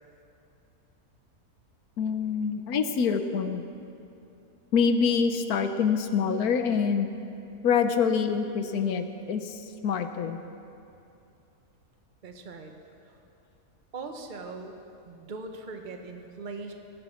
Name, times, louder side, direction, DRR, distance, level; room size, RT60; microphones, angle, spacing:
voice 1, 2.0-3.6 4.7-7.1 7.6-10.4, left 6 dB, 80° left, 8 dB, 1.3 m, -26 dB
voice 2, 12.2-12.7 13.0-13.2 13.9-14.8 15.0-16.7, right 3 dB, 35° right, 4 dB, 1.1 m, -40 dB
20.0 x 9.5 x 6.2 m, 2.7 s
omnidirectional pair, 1.6 m